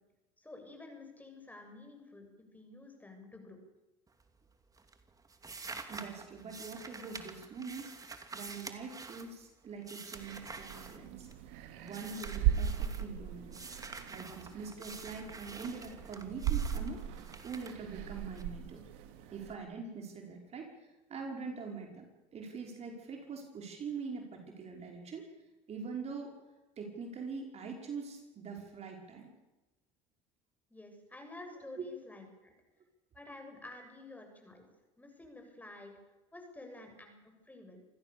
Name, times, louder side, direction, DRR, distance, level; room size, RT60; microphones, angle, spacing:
voice 1, 0.4-2.2 2.5-3.6 30.7-32.5 33.1-34.7 35.0-35.9 36.3-37.8, left 2 dB, 10° left, 4 dB, 7.2 m, -50 dB
sound 1, 4.1-4.5 4.8-11.5 11.9-13.1 13.5-18.4, right 4 dB, 25° right, 2.7 m, -48 dB
voice 2, 5.9-11.3 11.8-13.6 14.1-18.8 19.3-22.1 22.3-25.3 25.7-26.4 26.8-29.3 31.8-31.9, right 5 dB, 45° right, 2 dB, 5.2 m, -43 dB
sound 2, 10.2-19.6, right 10 dB, 80° right, 2.5 m, -38 dB
27.5 x 16.0 x 7.0 m, 1.0 s
supercardioid pair, 85°, 15 cm